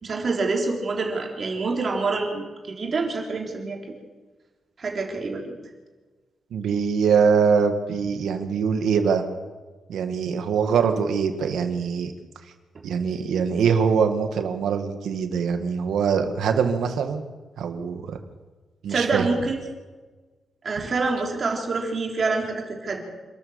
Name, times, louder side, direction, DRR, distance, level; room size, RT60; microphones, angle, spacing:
voice 1, 0.0-3.8 4.8-5.5 18.9-19.6 20.6-23.0, right 3 dB, 40° right, 0 dB, 3.9 m, -26 dB
voice 2, 6.5-9.2 9.9-12.1 12.8-17.2 17.6-18.2 18.8-19.2, right 6 dB, 85° right, 6 dB, 2.0 m, -23 dB
27.0 x 13.5 x 7.3 m, 1.3 s
wide cardioid pair, 155°, 0 cm